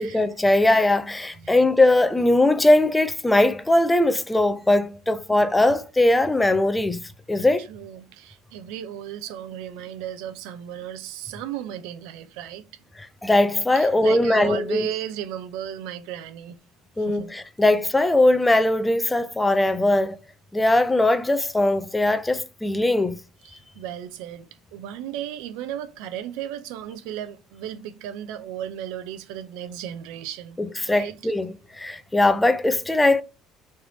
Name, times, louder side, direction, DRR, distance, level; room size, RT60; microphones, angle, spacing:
voice 1, 0.0-7.0 7.3-7.7 13.0-14.9 17.0-20.2 20.5-23.2 30.6-33.2, left 2 dB, 10° left, 0.4 m, -20 dB
voice 2, 7.6-12.6 13.8-16.6 17.1-17.3 23.4-30.6 30.9-31.3, right 10 dB, 80° right, 0.6 m, -35 dB
3.3 x 3.2 x 3.9 m
cardioid pair, 140°, 0 cm